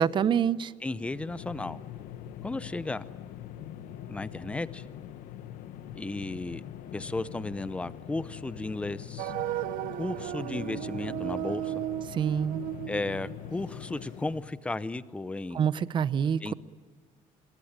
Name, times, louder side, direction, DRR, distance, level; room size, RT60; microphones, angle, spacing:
voice 1, 0.0-0.7 12.1-12.6 15.5-16.5, right 8 dB, 35° right, 17 dB, 0.7 m, -26 dB
sound 1, 0.8-14.7, left 11 dB, 80° left, 1.2 m, -43 dB
voice 2, 0.8-1.8 2.4-3.0 4.1-4.8 6.0-6.6 6.9-9.3 10.0-11.8 12.9-15.7 16.4-16.5, left 2 dB, 10° left, 16 dB, 0.7 m, -34 dB
sound 2, 9.2-14.0, right 15 dB, 85° right, 0.7 m, -35 dB
25.5 x 22.0 x 8.9 m, 1.5 s
cardioid pair, 165°, 14 cm